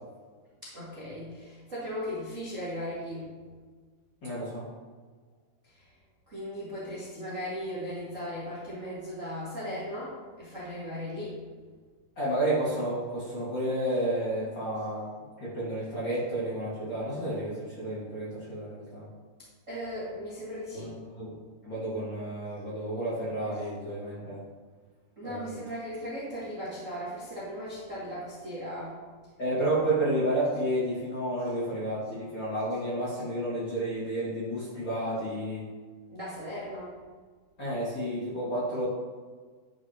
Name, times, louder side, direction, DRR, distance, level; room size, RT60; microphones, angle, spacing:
voice 1, 0.6-3.4 5.6-5.9 6.3-11.3 19.7-20.9 25.2-29.0 36.1-36.9, equal, 35° right, -10 dB, 1.3 m, -37 dB
voice 2, 4.2-4.6 12.2-15.1 15.4-19.1 20.7-20.9 21.2-21.4 21.6-24.4 25.2-25.5 29.4-35.6 37.6-38.9, right 1 dB, 35° left, -9 dB, 2.1 m, -31 dB
10.0 x 6.7 x 3.0 m, 1.5 s
omnidirectional pair, 4.5 m